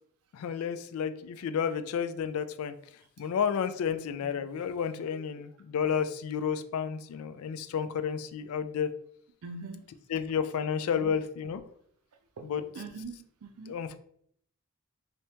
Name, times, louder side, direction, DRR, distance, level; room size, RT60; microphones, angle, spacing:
voice 1, 0.3-2.7 3.2-8.9 10.1-11.6 12.4-12.6 13.7-14.0, left 7 dB, 75° left, 11 dB, 0.3 m, -31 dB
voice 2, 9.4-9.9 11.0-11.1 12.4-13.7, right 3 dB, 85° right, 6 dB, 0.5 m, -43 dB
3.4 x 2.7 x 2.8 m, 0.66 s
head